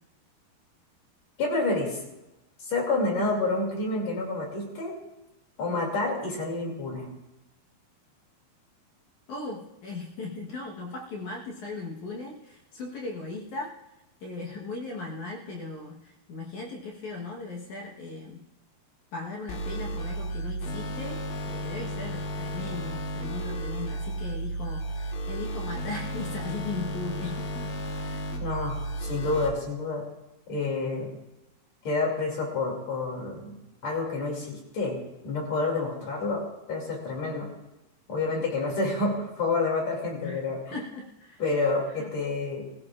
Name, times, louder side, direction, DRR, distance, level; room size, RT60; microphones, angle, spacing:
voice 1, 1.4-2.0 2.6-4.9 5.6-7.1 28.4-30.0 30.5-31.1 31.8-33.6 33.8-35.0 35.2-36.4 36.7-37.5 38.1-40.6 41.4-42.6, left 3 dB, 45° left, -1 dB, 3.4 m, -28 dB
voice 2, 9.3-13.7 14.2-18.4 19.1-21.2 21.5-28.3 40.2-40.4 40.7-41.4 42.0-42.1, left 3 dB, 65° left, -1 dB, 2.0 m, -38 dB
sound 1, 19.5-29.5, right 1 dB, 90° left, 3.5 m, -33 dB
21.0 x 15.0 x 2.4 m, 0.96 s
omnidirectional pair, 4.8 m